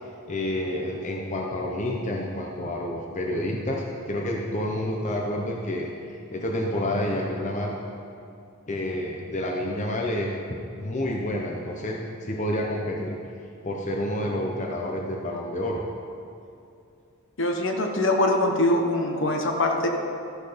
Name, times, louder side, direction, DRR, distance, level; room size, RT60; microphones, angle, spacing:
voice 1, 0.3-7.8 8.7-10.3 10.8-13.2 13.6-15.8, left 1 dB, 35° left, -1 dB, 0.8 m, -29 dB
voice 2, 17.4-19.9, left 1 dB, 55° left, 3 dB, 1.0 m, -23 dB
13.0 x 6.5 x 5.1 m, 2.5 s
head